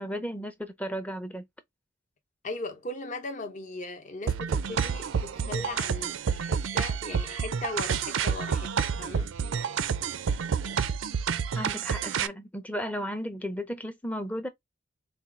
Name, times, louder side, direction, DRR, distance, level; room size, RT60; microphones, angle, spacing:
voice 1, 0.0-1.5 11.6-14.5, equal, 5° left, 0.5 m, -34 dB
voice 2, 2.4-9.3, left 2 dB, 40° left, 0.8 m, -38 dB
sound 1, 4.3-12.3, right 6 dB, 80° right, 0.4 m, -29 dB
4.2 x 2.3 x 3.5 m
head